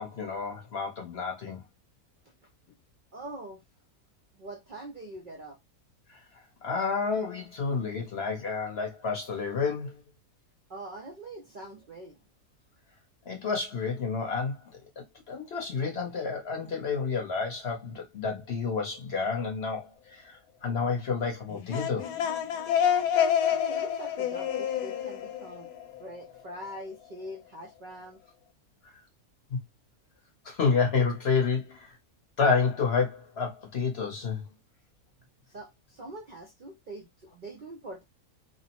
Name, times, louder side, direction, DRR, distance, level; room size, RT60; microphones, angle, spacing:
voice 1, 0.0-1.6 6.1-10.0 13.3-14.6 15.0-22.1 29.5-29.6 30.4-32.0 32.4-34.4, left 5 dB, 50° left, 0.9 m, -30 dB
voice 2, 3.1-3.6 4.4-5.6 10.7-12.2 23.5-25.7 26.0-28.2 35.4-38.0, right 1 dB, 65° right, 0.5 m, -43 dB
sound 1, 21.5-26.2, left 9 dB, 75° left, 1.0 m, -28 dB
2.9 x 2.0 x 2.8 m
omnidirectional pair, 1.6 m